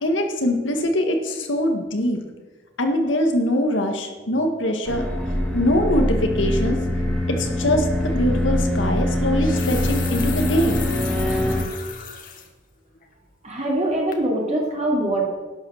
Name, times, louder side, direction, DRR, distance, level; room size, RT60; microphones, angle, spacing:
voice 1, 0.0-2.2 2.8-5.0 5.5-6.8 7.3-10.8, left 1 dB, 70° left, 4 dB, 1.8 m, -22 dB
sound 1, 4.9-11.6, left 1 dB, 5° left, 2.6 m, -23 dB
sound 2, 8.0-8.2 9.2-12.5 13.0-13.1 13.6-13.9 14.1-14.3, left 8 dB, 45° left, 1.3 m, -36 dB
voice 2, 13.4-15.3, right 1 dB, 35° right, -2 dB, 2.9 m, -23 dB
11.5 x 9.0 x 6.5 m, 1.3 s
head